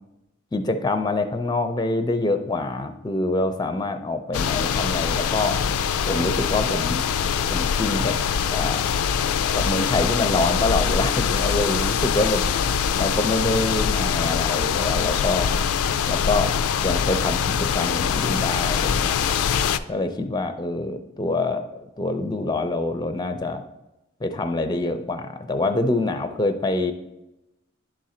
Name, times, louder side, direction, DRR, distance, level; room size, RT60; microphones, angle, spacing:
voice 1, 0.5-5.6 6.1-7.0 7.5-8.2 8.5-8.8 9.5-12.4 13.0-15.5 16.1-16.5 16.8-19.2 19.9-23.6 24.2-26.9, left 2 dB, 20° left, 8 dB, 0.4 m, -25 dB
sound 1, 4.3-19.8, left 7 dB, 90° left, 0.3 m, -23 dB
10.5 x 3.8 x 4.3 m, 0.94 s
head